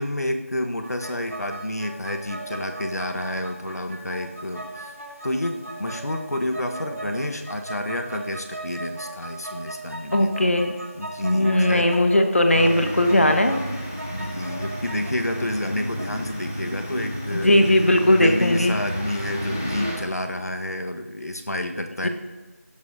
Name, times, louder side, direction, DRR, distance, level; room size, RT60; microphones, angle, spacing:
voice 1, 0.0-4.9 5.2-10.3 10.9-12.0 14.0-17.9 18.2-22.1, left 1 dB, 85° left, 6 dB, 1.3 m, -29 dB
sound 1, 0.8-20.1, right 2 dB, 80° right, 3.6 m, -39 dB
voice 2, 10.1-10.7 11.2-13.6 17.3-18.8 22.0-22.1, left 1 dB, 55° left, 5 dB, 1.3 m, -18 dB
sound 2, 12.5-19.9, equal, 10° left, 0.6 m, -32 dB
16.5 x 12.5 x 2.7 m, 1.2 s
figure-of-eight pair, 175°, 8 cm